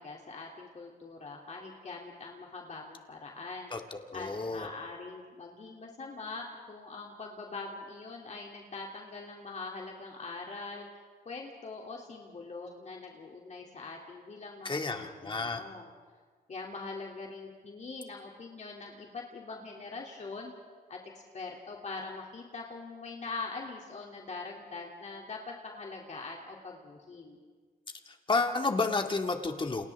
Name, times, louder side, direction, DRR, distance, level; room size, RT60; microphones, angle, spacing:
voice 1, 0.0-3.7 4.1-10.9 11.2-15.9 16.5-20.5 20.9-27.4, left 3 dB, 50° left, -1 dB, 2.8 m, -43 dB
voice 2, 3.7-4.7 14.6-15.6 28.1-29.9, left 3 dB, 30° left, 4 dB, 2.0 m, -31 dB
29.5 x 29.5 x 3.6 m, 1.5 s
cardioid pair, 90°, 16 cm